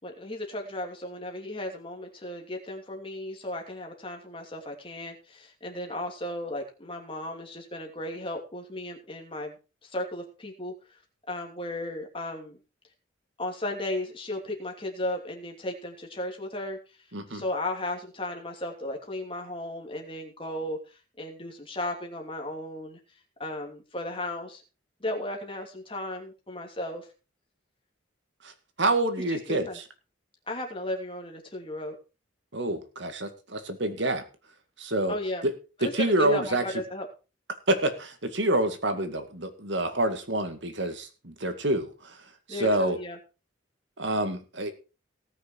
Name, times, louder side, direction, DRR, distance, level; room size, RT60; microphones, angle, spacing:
voice 1, 0.0-9.5 9.8-11.0 11.3-12.6 13.4-16.8 17.3-23.0 23.4-24.6 25.0-27.1 29.3-29.8 30.5-32.0 35.1-35.4 35.8-37.1 42.5-43.2, left 1 dB, 25° left, 2 dB, 3.0 m, -35 dB
voice 2, 17.1-17.4 28.4-28.5 28.8-29.8 32.5-34.2 34.8-35.2 35.4-35.5 35.8-36.6 37.7-42.2 42.5-43.0 44.0-44.7, right 1 dB, 65° right, 8 dB, 2.1 m, -27 dB
18.5 x 6.6 x 4.7 m, 0.32 s
head